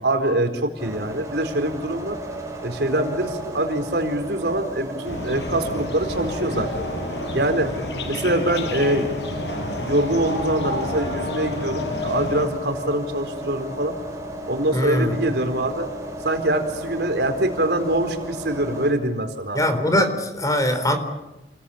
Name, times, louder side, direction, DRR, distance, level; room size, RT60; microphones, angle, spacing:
voice 1, 0.0-2.2 2.6-6.7 7.3-7.7 8.1-9.1 9.8-14.0 14.5-15.9 16.2-19.6, right 1 dB, 70° right, 6 dB, 4.3 m, -24 dB
sound 1, 0.8-18.9, right 1 dB, 15° right, 6.2 m, -34 dB
sound 2, 5.0-12.5, left 1 dB, 80° left, 5.8 m, -30 dB
voice 2, 14.7-15.2 19.5-21.0, left 1 dB, 20° left, 8 dB, 3.9 m, -21 dB
29.5 x 22.0 x 8.7 m, 0.99 s
head